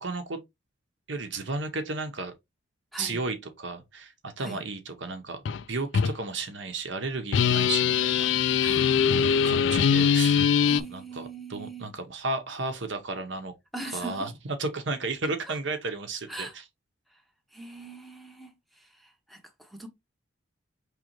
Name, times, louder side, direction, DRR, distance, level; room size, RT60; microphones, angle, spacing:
voice 1, 0.0-0.4 1.1-2.3 3.0-9.0 9.4-13.5 13.9-14.3 14.6-16.6, right 3 dB, 65° right, 0.9 m, -34 dB
voice 2, 2.9-3.2 4.4-4.6 8.6-8.9 10.7-11.9 13.7-14.3 15.5-15.6 16.3-16.5 17.1-17.2 17.5-19.9, right 2 dB, ahead, 0.7 m, -41 dB
sound 1, 5.5-5.6 5.9-6.1 7.3-10.8, left 7 dB, 65° left, 0.3 m, -22 dB
5.2 x 3.3 x 3.0 m
head